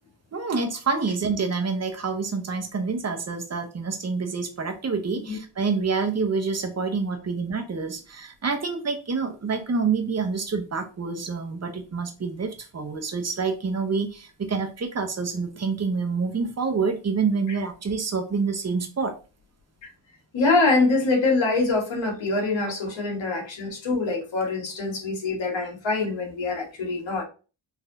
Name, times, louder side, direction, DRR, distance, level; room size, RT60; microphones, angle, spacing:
voice 1, 0.3-19.1, right 4 dB, 35° right, 6 dB, 0.9 m, -27 dB
voice 2, 20.3-27.2, left 3 dB, 70° left, 0 dB, 1.5 m, -24 dB
4.1 x 2.7 x 2.6 m, 0.34 s
cardioid pair, 70°, 47 cm